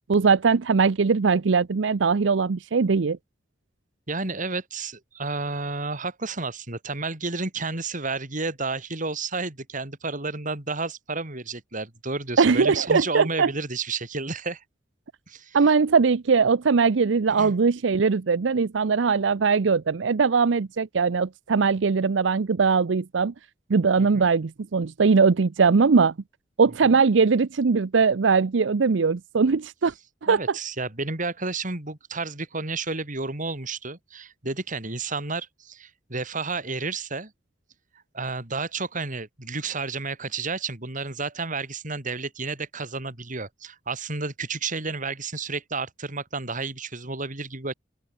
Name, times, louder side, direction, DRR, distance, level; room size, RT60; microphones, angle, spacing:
voice 1, 0.1-3.2 12.4-13.5 15.5-23.3 23.7-26.1 26.6-29.9 30.2-30.6, right 5 dB, 80° right, 0.6 m, -21 dB
voice 2, 4.1-14.6 15.3-15.6 17.3-17.5 24.0-24.3 26.7-27.0 30.3-37.3 38.1-47.7, right 3 dB, 45° right, 4.0 m, -31 dB
open air
head